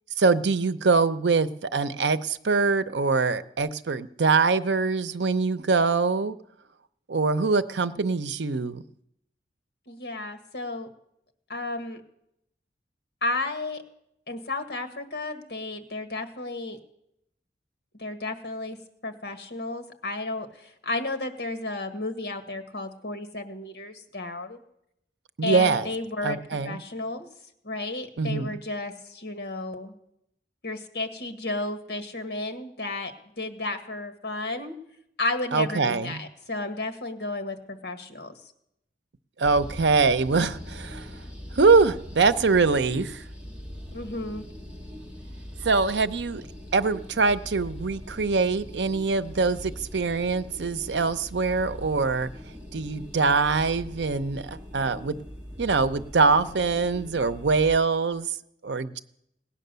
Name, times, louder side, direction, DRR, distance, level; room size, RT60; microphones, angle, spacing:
voice 1, 0.2-6.3 7.1-8.8 25.4-25.9 26.2-26.8 28.2-28.5 35.5-36.2 39.4-41.1 41.5-43.2 45.6-46.4 46.7-52.3 52.7-55.2 55.6-58.3 58.6-59.0, right 4 dB, 85° right, 12 dB, 0.7 m, -23 dB
voice 2, 9.9-10.9 11.5-12.0 13.2-13.8 14.3-16.8 17.9-18.8 19.0-24.6 25.4-27.3 27.6-29.9 30.6-34.8 35.2-38.5 43.9-44.5, left 2 dB, 65° left, 8 dB, 1.6 m, -33 dB
sound 1, 39.4-57.8, equal, 5° right, 2.1 m, -41 dB
18.0 x 9.8 x 6.8 m, 0.77 s
head